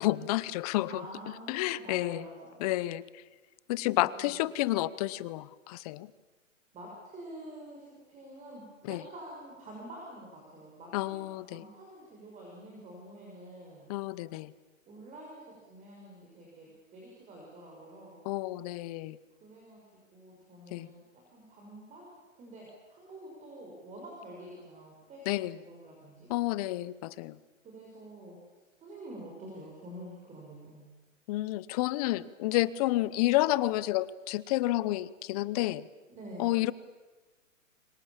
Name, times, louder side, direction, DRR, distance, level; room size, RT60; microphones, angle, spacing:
voice 1, 0.0-1.1 1.5-2.3 2.6-3.2 3.7-6.1 8.8-9.0 10.9-11.6 13.9-14.5 18.2-19.2 20.7-20.9 25.3-25.6 26.3-27.4 31.3-35.9 36.4-36.7, left 17 dB, 30° left, 19 dB, 0.8 m, -30 dB
voice 2, 0.9-2.6 3.9-4.4 6.7-13.9 14.9-18.3 19.4-25.3 25.6-26.3 27.6-28.4 28.8-30.9 36.1-36.5, right 1 dB, 20° right, -2 dB, 6.4 m, -48 dB
29.5 x 25.0 x 7.4 m, 1.2 s
hypercardioid pair, 140°, 39 cm